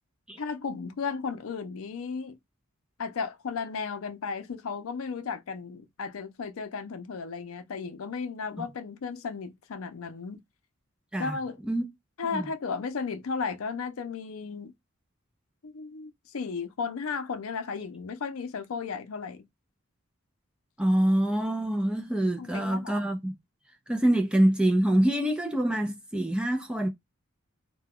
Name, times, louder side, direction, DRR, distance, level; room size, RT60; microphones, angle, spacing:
voice 1, 0.4-2.4 3.0-10.4 11.2-11.6 12.2-14.7 15.6-19.5 22.4-23.1, left 5 dB, 75° left, 0.5 m, -34 dB
voice 2, 20.8-23.3 23.9-26.9, right 1 dB, 5° right, 0.4 m, -25 dB
2.3 x 2.2 x 3.5 m
head